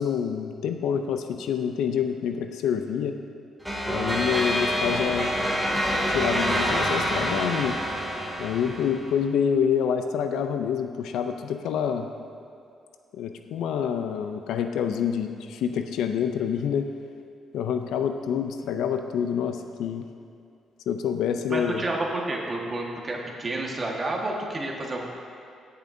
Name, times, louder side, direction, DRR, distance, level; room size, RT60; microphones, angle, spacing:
voice 1, 0.0-3.2 3.9-5.3 6.1-7.8 8.4-12.1 13.1-16.9 17.5-20.1 20.9-21.8, left 8 dB, 85° left, 7 dB, 0.4 m, -27 dB
sound 1, 3.6-9.1, equal, ahead, 2.4 m, -26 dB
voice 2, 21.5-25.1, right 2 dB, 30° right, -1 dB, 1.5 m, -30 dB
19.0 x 6.9 x 2.7 m, 2.4 s
cardioid pair, 90°, 0 cm